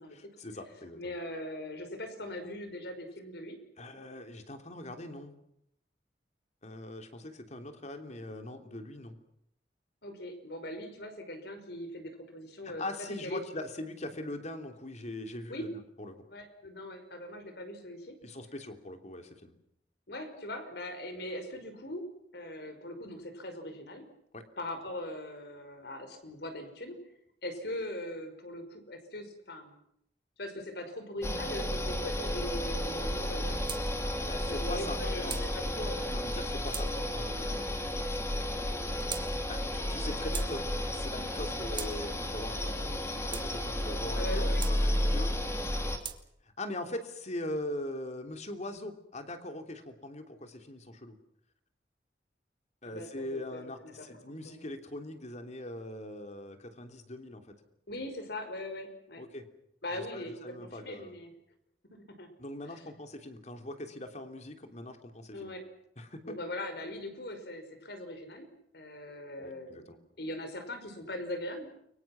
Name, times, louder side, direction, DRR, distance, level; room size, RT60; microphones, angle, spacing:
voice 1, 0.1-1.2 3.8-5.3 6.6-9.2 12.6-15.7 16.0-16.2 18.2-19.6 24.3-24.4 34.2-35.4 36.1-38.2 39.5-45.3 45.8-45.9 46.4-51.1 52.8-57.4 59.2-59.5 59.9-61.2 62.4-65.5 66.0-66.3 69.4-70.0, left 1 dB, 40° left, 6 dB, 3.1 m, -41 dB
voice 2, 0.9-3.6 10.0-13.4 15.5-15.6 16.3-18.2 20.1-22.0 22.3-24.0 24.6-27.0 27.4-29.7 30.4-33.6 33.9-36.2 44.1-44.7 52.8-54.1 54.4-54.7 57.9-59.2 59.8-60.3 60.6-61.3 61.9-62.3 65.3-65.6 66.2-68.5 68.7-69.9 70.2-71.7, left 1 dB, 65° left, 7 dB, 5.5 m, -41 dB
sound 1, 31.2-46.0, left 1 dB, 15° left, 3.3 m, -32 dB
sound 2, 33.6-33.8 34.7-35.5 36.3-36.9 37.7-38.2 39.0-39.3 40.0-40.5 41.4-41.9 42.8-43.5 44.2-44.8 45.6-46.2, right 7 dB, 25° right, 2.0 m, -42 dB
29.5 x 24.0 x 6.0 m, 0.74 s
head